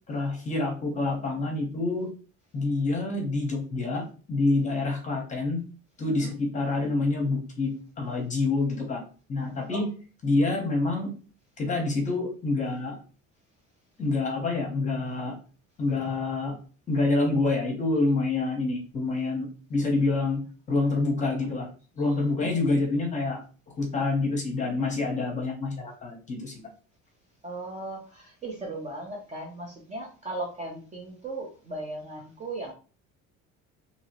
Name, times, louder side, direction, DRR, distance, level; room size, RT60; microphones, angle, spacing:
voice 1, 0.1-2.1 2.5-5.6 6.0-7.7 8.0-9.0 9.3-9.9 10.2-11.1 11.6-13.0 14.0-15.4 15.8-16.6 16.9-20.4 20.7-21.7 21.9-23.4 23.7-26.5, left 3 dB, 20° left, 1 dB, 0.8 m, -27 dB
voice 2, 27.4-32.7, right 2 dB, 20° right, 0 dB, 0.5 m, -37 dB
2.9 x 2.8 x 2.8 m, 0.36 s
cardioid pair, 170°, 33 cm